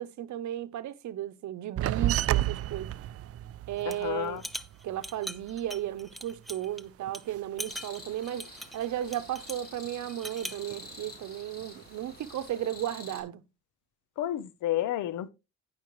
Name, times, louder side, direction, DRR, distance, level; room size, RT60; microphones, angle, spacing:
voice 1, 0.0-3.0 3.7-4.4 4.8-13.4, right 12 dB, 70° right, 0.9 m, -35 dB
sound 1, 1.8-6.7 7.0-8.4 8.7-9.5 9.8-11.2 11.6-12.3, right 13 dB, 50° right, 0.4 m, -33 dB
sound 2, 3.8-4.0 4.4-6.8 7.1-7.2 7.6-9.7 10.1-10.6, equal, ahead, 0.7 m, -41 dB
voice 2, 3.9-4.4 14.2-15.3, left 13 dB, 80° left, 0.9 m, -31 dB
sound 3, 7.7-13.2, left 2 dB, 30° left, 4.9 m, -48 dB
15.5 x 5.6 x 3.1 m
cardioid pair, 90°, 30 cm